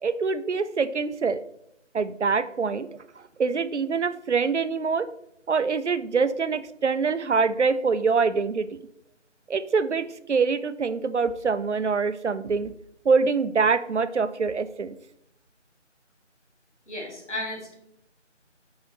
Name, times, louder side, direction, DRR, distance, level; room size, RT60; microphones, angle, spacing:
voice 1, 0.0-1.4 1.9-2.9 3.4-5.1 5.5-8.8 9.5-12.7 13.0-15.0, right 5 dB, 70° right, 13 dB, 0.5 m, -24 dB
voice 2, 16.9-17.7, left 1 dB, 70° left, -1 dB, 2.4 m, -34 dB
6.3 x 4.7 x 4.2 m, 0.78 s
figure-of-eight pair, 170°, 37 cm